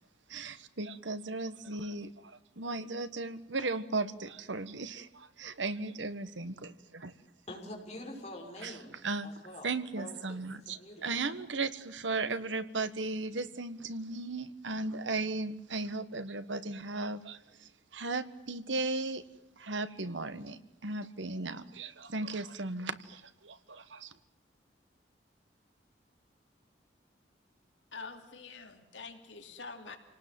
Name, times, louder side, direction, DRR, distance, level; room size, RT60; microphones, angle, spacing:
voice 1, 0.3-2.1 2.6-7.1 8.6-9.3 9.6-19.2 19.6-24.1, right 3 dB, 85° right, 12 dB, 1.5 m, -36 dB
voice 2, 7.5-9.0 9.2-11.3, left 1 dB, 35° left, 0 dB, 6.1 m, -46 dB
voice 3, 27.9-30.0, left 4 dB, 85° left, 4 dB, 3.0 m, -46 dB
28.0 x 19.0 x 7.8 m, 0.96 s
head